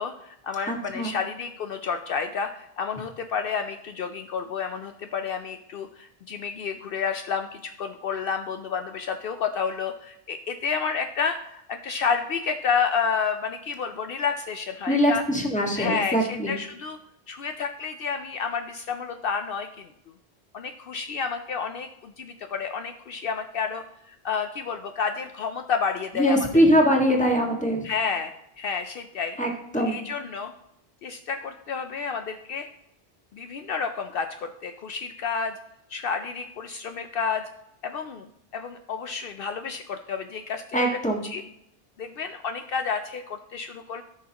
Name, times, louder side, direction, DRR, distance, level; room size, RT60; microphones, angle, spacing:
voice 1, 0.0-15.2 15.7-17.0 17.3-19.9 20.5-26.5 27.8-29.4 29.7-30.5 31.0-32.7 33.3-35.5 35.9-37.4 37.8-38.3 38.5-41.5 42.0-44.0, left 6 dB, 65° left, 7 dB, 0.7 m, -30 dB
voice 2, 0.7-1.1 14.9-16.5 26.2-27.8 29.4-30.0 40.7-41.2, equal, 5° left, 0 dB, 1.6 m, -22 dB
14.5 x 6.2 x 2.9 m, 0.81 s
omnidirectional pair, 1.1 m